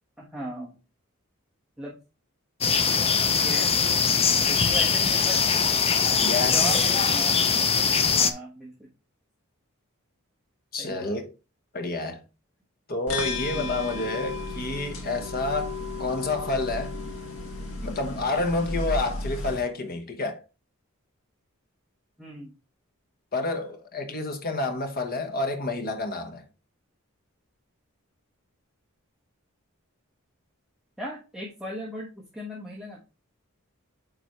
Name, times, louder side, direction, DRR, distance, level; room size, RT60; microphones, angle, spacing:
voice 1, 0.2-0.8 1.8-2.0 3.3-3.7 4.5-5.4 6.5-7.6 8.2-8.9 10.8-11.2 13.5-13.9 18.5-18.6 22.2-22.5 31.0-33.0, equal, 5° right, 1.3 m, -37 dB
sound 1, 2.6-8.3, left 6 dB, 30° left, 0.5 m, -22 dB
voice 2, 6.2-6.9 10.7-11.3 11.7-12.2 12.9-17.0 17.8-20.4 23.3-26.4, left 2 dB, 45° left, 1.1 m, -29 dB
sound 2, 13.1-19.6, left 3 dB, 75° left, 1.7 m, -33 dB
9.0 x 3.9 x 3.1 m
head